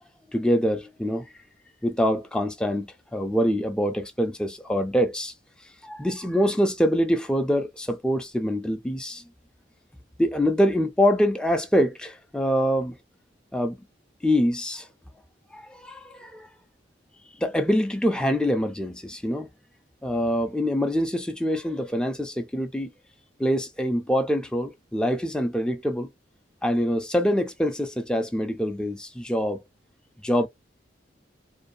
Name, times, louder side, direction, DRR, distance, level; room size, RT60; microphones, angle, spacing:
voice 1, 0.3-1.3 1.8-5.3 5.8-9.2 10.2-13.0 13.5-13.8 14.2-14.9 15.5-16.5 17.4-19.5 20.0-22.9 23.4-26.1 26.6-29.6 30.2-30.5, equal, 5° left, 0.4 m, -25 dB
2.6 x 2.1 x 2.5 m
head